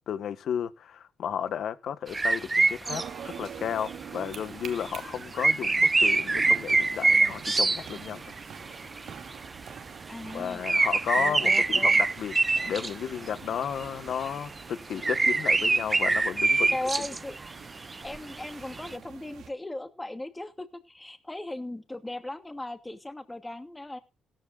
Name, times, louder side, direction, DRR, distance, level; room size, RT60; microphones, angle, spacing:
voice 1, 0.1-8.2 10.3-12.3 12.6-16.8, left 8 dB, 65° left, 1.6 m, -33 dB
sound 1, 2.1-3.1 3.3-3.5 3.9-4.0 4.3-4.4 4.8-8.4 8.7-9.0 9.3-9.4 9.7-9.8 10.6-12.9 13.6-13.8 14.2-14.3 14.6-14.7 15.0-17.5 17.8-18.9, right 3 dB, 25° right, 0.8 m, -24 dB
sound 2, 2.8-19.5, right 8 dB, 65° right, 2.6 m, -46 dB
voice 2, 10.1-10.6 11.2-11.9 16.7-17.4 18.0-24.0, left 1 dB, 15° left, 2.6 m, -37 dB
17.0 x 14.0 x 2.6 m
cardioid pair, 90°, 0 cm